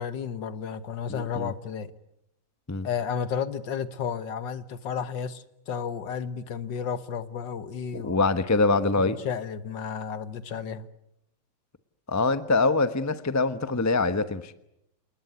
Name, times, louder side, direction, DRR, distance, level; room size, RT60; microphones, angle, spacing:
voice 1, 0.0-1.9 2.8-8.2 8.9-10.9, left 7 dB, 60° left, 13 dB, 1.8 m, -32 dB
voice 2, 1.1-1.5 2.7-2.9 7.9-9.2 12.1-14.5, left 3 dB, 15° left, 12 dB, 0.7 m, -24 dB
28.5 x 20.0 x 9.5 m, 0.83 s
omnidirectional pair, 2.3 m